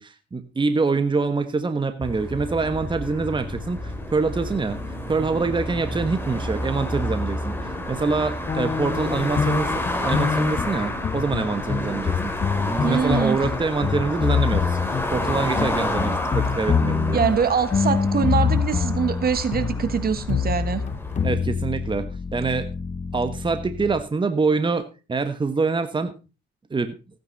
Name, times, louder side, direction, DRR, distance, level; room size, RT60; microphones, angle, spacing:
voice 1, 0.0-4.8 5.1-12.3 12.7-17.2 21.2-22.7 23.1-26.1 26.7-26.9, right 4 dB, 25° right, 9 dB, 1.3 m, -25 dB
sound 1, 2.0-21.2, left 1 dB, 10° left, 3.0 m, -30 dB
sound 2, 8.5-24.0, left 6 dB, 35° left, 1.3 m, -26 dB
voice 2, 12.8-13.4 17.1-20.8, right 6 dB, 50° right, 12 dB, 1.6 m, -23 dB
16.0 x 9.4 x 4.1 m, 0.31 s
cardioid pair, 90°, 20 cm